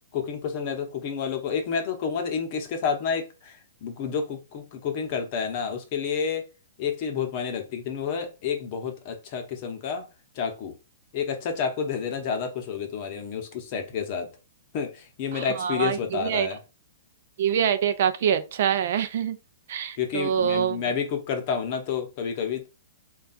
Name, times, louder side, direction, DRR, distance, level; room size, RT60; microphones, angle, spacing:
voice 1, 0.1-6.5 6.8-10.1 10.3-10.7 11.1-14.3 14.7-16.6 20.0-22.7, left 6 dB, 35° left, 0.8 m, -29 dB
voice 2, 15.3-16.5 17.4-19.4 19.7-20.9, right 8 dB, 55° right, 0.4 m, -25 dB
3.3 x 2.3 x 4.0 m
hypercardioid pair, 160°, 0 cm